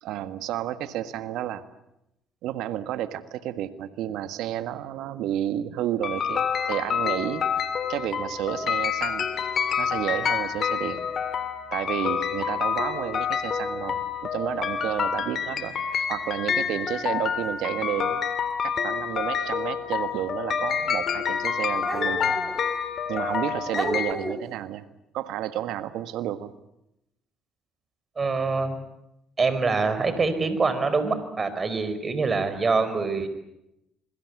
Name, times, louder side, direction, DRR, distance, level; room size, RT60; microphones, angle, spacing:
voice 1, 0.0-1.6 2.4-7.4 7.9-9.3 9.8-11.0 11.7-18.2 18.6-22.4 23.1-24.8 25.1-26.5, right 12 dB, 70° right, 11 dB, 1.6 m, -31 dB
sound 1, 6.0-24.1, left 7 dB, 50° left, 3.0 m, -28 dB
sound 2, 14.8-14.9 16.3-16.4 17.4-17.6 20.1-20.2 21.8-22.6 23.3-23.4 23.7-24.5, right 1 dB, 15° right, 6.6 m, -31 dB
voice 2, 28.2-28.8 29.4-33.3, right 4 dB, 35° right, 12 dB, 5.0 m, -25 dB
26.5 x 23.0 x 8.4 m, 0.85 s
hypercardioid pair, 60°, 0 cm